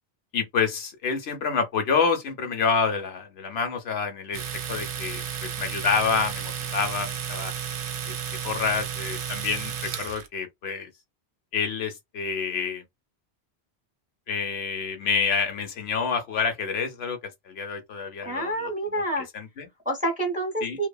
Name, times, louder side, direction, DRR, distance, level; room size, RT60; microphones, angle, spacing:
voice 1, 0.3-7.5 8.1-8.2 8.4-10.9 11.5-12.8 14.3-18.7 19.3-19.7 20.6-20.8, left 5 dB, 75° left, 0.9 m, -28 dB
Domestic sounds home sounds, 4.3-10.3, right 8 dB, 65° right, 0.7 m, -33 dB
voice 2, 18.2-19.3 19.8-20.9, right 1 dB, 10° right, 0.7 m, -28 dB
2.8 x 2.2 x 2.2 m
omnidirectional pair, 1.1 m